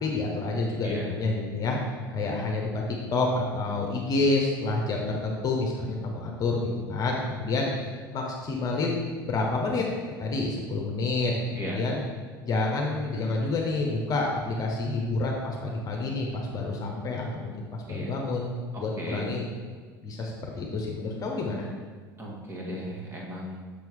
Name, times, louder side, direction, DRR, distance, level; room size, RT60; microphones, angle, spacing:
voice 1, 0.0-1.8 2.1-2.8 3.1-7.7 8.1-9.0 9.2-9.8 10.2-12.0 12.4-19.4 20.0-21.7, left 3 dB, 30° left, 0 dB, 1.1 m, -28 dB
voice 2, 18.7-19.3 22.2-23.6, equal, 20° right, -3 dB, 1.8 m, -36 dB
6.9 x 6.1 x 3.6 m, 1.5 s
figure-of-eight pair, 70°, 12 cm